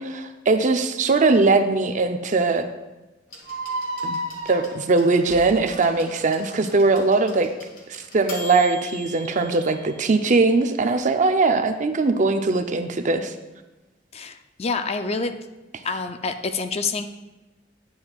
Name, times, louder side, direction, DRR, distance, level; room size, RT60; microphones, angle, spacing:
voice 1, 0.0-2.7 4.0-4.2 4.5-7.5 7.9-13.3, right 3 dB, 45° right, 7 dB, 0.5 m, -20 dB
sound 1, 3.3-11.1 12.2-12.3, left 1 dB, 50° left, 1.8 m, -42 dB
sound 2, 3.5-6.6, right 1 dB, 85° right, 1.0 m, -33 dB
voice 2, 14.1-15.4 15.8-17.0, left 4 dB, 35° left, 8 dB, 0.4 m, -27 dB
10.0 x 7.9 x 2.4 m, 1.1 s
head